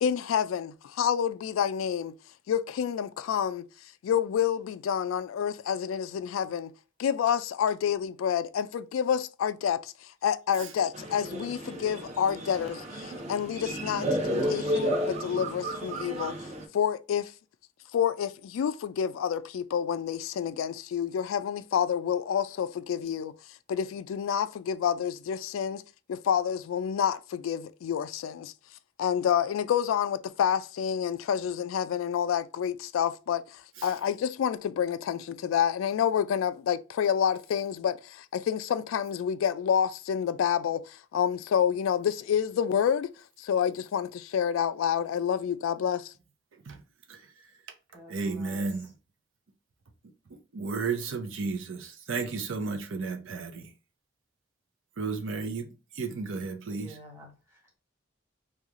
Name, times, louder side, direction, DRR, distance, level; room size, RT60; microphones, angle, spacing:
voice 1, 0.0-2.1 2.5-3.7 4.0-6.7 7.0-16.4 16.7-17.3 17.9-23.3 23.7-25.8 26.1-28.5 29.0-43.1 43.4-46.1, left 8 dB, 90° left, 0.3 m, -28 dB
sound 1, 10.9-16.6, equal, 35° right, 0.7 m, -32 dB
voice 2, 46.5-46.8 47.1-47.7 48.1-48.9 50.3-53.7 55.0-57.0, right 4 dB, 80° right, 0.6 m, -34 dB
voice 3, 47.9-48.7 56.7-57.6, right 1 dB, 15° right, 1.3 m, -49 dB
3.1 x 2.3 x 3.5 m
head